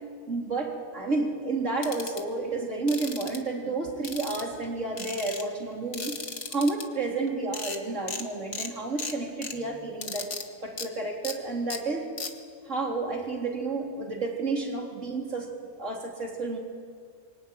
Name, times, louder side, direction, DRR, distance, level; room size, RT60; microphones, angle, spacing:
voice 1, 0.3-6.2 6.5-10.3 10.6-12.0 12.7-15.5 15.8-16.6, right 3 dB, 65° right, 0 dB, 4.0 m, -30 dB
sound 1, 1.8-2.2 2.9-3.4 4.0-4.6 5.0-5.4 5.9-6.8 7.3-7.4 7.5-7.8 8.1-8.2 8.5-8.7 9.0-9.5 10.0-10.4 10.8-10.9 11.2-11.3 11.7-11.8 12.2-12.3, left 4 dB, 60° left, 2.1 m, -35 dB
25.5 x 24.0 x 9.5 m, 2.1 s
omnidirectional pair, 1.4 m